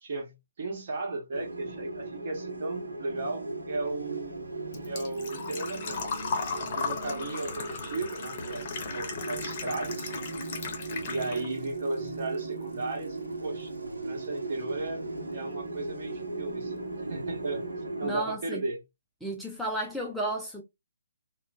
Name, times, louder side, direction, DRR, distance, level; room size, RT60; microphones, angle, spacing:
voice 1, 0.0-4.3 4.8-6.0 6.5-10.1 11.1-13.7 14.0-15.0 15.3-16.8 17.1-17.6 18.0-18.8, right 2 dB, 40° right, 1.1 m, -35 dB
sound 1, 1.3-18.2, right 3 dB, 75° right, 0.7 m, -38 dB
Engine / Trickle dribble / Fill (with liquid), 3.8-11.7 12.0-13.0 13.3-13.4 15.3-15.4 15.6-15.9 16.3-16.4 16.7-16.8, left 5 dB, 30° left, 0.7 m, -36 dB
voice 2, 18.0-18.6 19.2-20.6, right 1 dB, ahead, 0.4 m, -33 dB
3.0 x 2.1 x 2.4 m
figure-of-eight pair, 140°, 0 cm